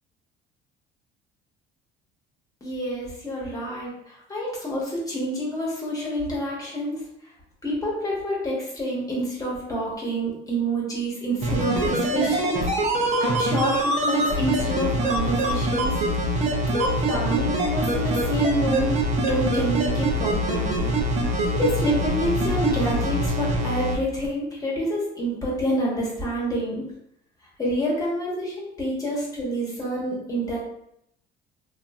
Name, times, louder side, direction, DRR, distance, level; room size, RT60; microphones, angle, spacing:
voice 1, 2.6-7.0 7.6-12.6 13.0-16.0 16.7-20.9 21.5-26.9 27.6-30.6, equal, 20° left, -4 dB, 1.2 m, -27 dB
sound 1, 11.4-23.9 24.2-24.3, right 1 dB, 40° right, 0.6 m, -24 dB
3.0 x 2.5 x 2.4 m, 0.75 s
cardioid pair, 115°, 19 cm